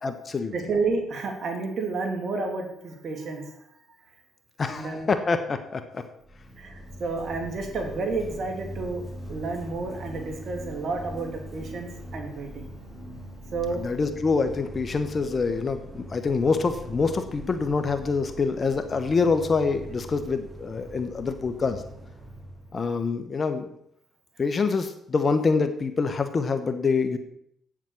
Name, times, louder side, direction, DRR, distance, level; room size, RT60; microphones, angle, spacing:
voice 1, 0.0-0.5 4.6-6.0 13.7-21.8 22.7-23.8 24.4-27.2, left 4 dB, 40° left, 9 dB, 1.2 m, -26 dB
voice 2, 0.5-3.5 4.6-5.1 6.6-12.7 13.5-13.9, right 3 dB, 60° right, 4 dB, 2.7 m, -31 dB
sound 1, 6.2-22.8, equal, 10° right, 4.5 m, -41 dB
9.1 x 7.4 x 7.2 m, 0.73 s
supercardioid pair, 60°, 0 cm